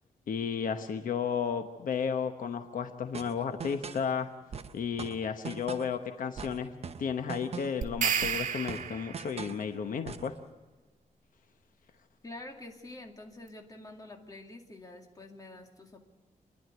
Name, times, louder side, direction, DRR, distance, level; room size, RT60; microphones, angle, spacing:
voice 1, 0.3-4.3 4.7-6.7 7.0-10.3, left 7 dB, 75° left, 7 dB, 1.0 m, -33 dB
sound 1, 3.1-4.1 4.5-6.0 6.4-7.9 8.2-9.7 10.1-10.4, right 6 dB, 45° right, 0.8 m, -41 dB
sound 2, 7.8-9.4, right 7 dB, 65° right, 1.8 m, -31 dB
voice 2, 12.2-16.0, left 2 dB, 25° left, 2 dB, 2.4 m, -47 dB
28.0 x 11.0 x 9.4 m, 1.2 s
wide cardioid pair, 155°, 14 cm